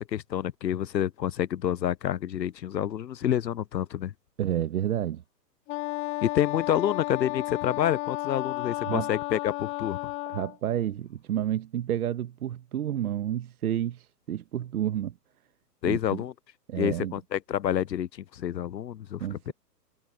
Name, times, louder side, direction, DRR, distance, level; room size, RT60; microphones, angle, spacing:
voice 1, 0.0-4.1 6.2-10.1 15.8-16.3 16.8-19.5, left 10 dB, 90° left, 0.8 m, -28 dB
voice 2, 4.4-5.2 8.9-9.1 10.3-15.1 15.8-16.2 16.7-17.1 19.2-19.5, right 11 dB, 60° right, 1.2 m, -30 dB
Wind instrument woodwind instrument, 5.7-10.6, left 23 dB, 25° left, 1.9 m, -33 dB
hypercardioid pair, 145°, 49 cm